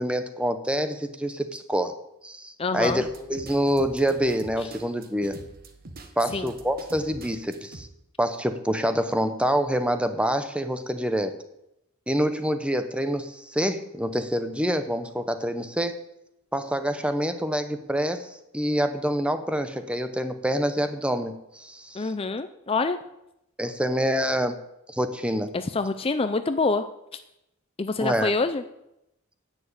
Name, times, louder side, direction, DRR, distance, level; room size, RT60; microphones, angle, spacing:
voice 1, 0.0-1.9 2.2-5.4 6.2-7.9 8.2-11.4 12.1-16.0 16.5-22.1 23.6-24.6 24.9-25.5 28.0-28.3, equal, 5° right, 9 dB, 0.8 m, -26 dB
voice 2, 2.6-3.0 4.6-4.7 6.3-6.5 21.9-23.0 25.5-26.8 27.1-27.2 27.8-28.6, left 3 dB, 25° left, 10 dB, 0.4 m, -26 dB
sound 1, 2.8-7.8, right 2 dB, 45° right, 1.3 m, -44 dB
10.5 x 7.1 x 8.8 m, 0.85 s
head